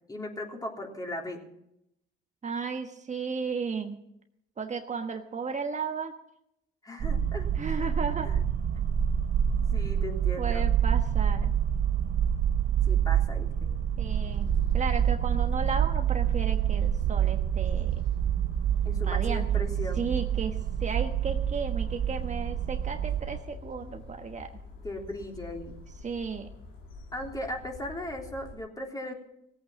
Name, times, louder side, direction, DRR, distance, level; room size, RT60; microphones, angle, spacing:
voice 1, 0.1-1.4 6.8-7.5 7.8-7.9 8.2-8.4 9.6-10.7 12.9-13.7 18.8-20.1 24.8-25.8 27.1-29.1, left 1 dB, 20° left, 1 dB, 3.5 m, -37 dB
voice 2, 2.4-4.0 4.6-6.1 7.5-8.3 10.4-11.5 14.0-17.9 19.1-19.7 20.0-24.5 26.0-26.5, right 5 dB, 35° right, 5 dB, 1.3 m, -34 dB
sound 1, 7.0-23.4, right 9 dB, 65° right, 0.8 m, -27 dB
sound 2, 14.1-28.6, left 2 dB, 80° left, 3.2 m, -46 dB
17.5 x 8.8 x 7.4 m, 0.78 s
cardioid pair, 90°, 20 cm